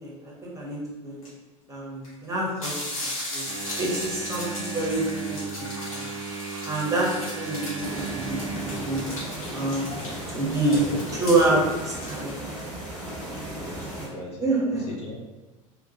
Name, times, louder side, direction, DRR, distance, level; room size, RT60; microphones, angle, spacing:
voice 1, 0.0-1.2 1.7-2.8 3.0-3.4 3.8-5.0 5.3-6.0 6.6-9.0 9.5-9.8 10.3-10.8 11.2-11.6 12.1-12.4 14.4-14.9, right 2 dB, 20° right, -4 dB, 0.8 m, -27 dB
sound 1, 1.2-1.3 2.0-2.1 2.4-12.4, left 1 dB, 80° left, 0.9 m, -37 dB
Engine, 3.5-9.0, right 5 dB, 50° right, 0.5 m, -36 dB
sound 2, 7.8-14.1, right 1 dB, 5° left, 1.1 m, -36 dB
voice 2, 10.7-11.7 13.5-14.4 14.7-15.2, left 2 dB, 35° left, -1 dB, 0.4 m, -37 dB
2.2 x 2.1 x 2.7 m, 1.2 s
figure-of-eight pair, 75°, 18 cm